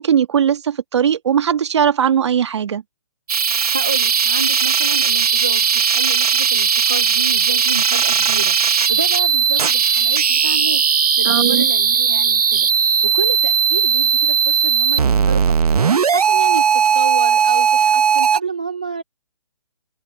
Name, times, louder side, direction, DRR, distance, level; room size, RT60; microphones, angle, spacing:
voice 1, 0.0-2.8 11.2-11.7, right 8 dB, 45° right, 1.6 m, -18 dB
sound 1, 3.3-18.4, right 7 dB, 75° right, 1.1 m, -17 dB
voice 2, 3.7-10.9 11.2-19.0, right 3 dB, 15° right, 0.3 m, -29 dB
open air
hypercardioid pair, 170°, 20 cm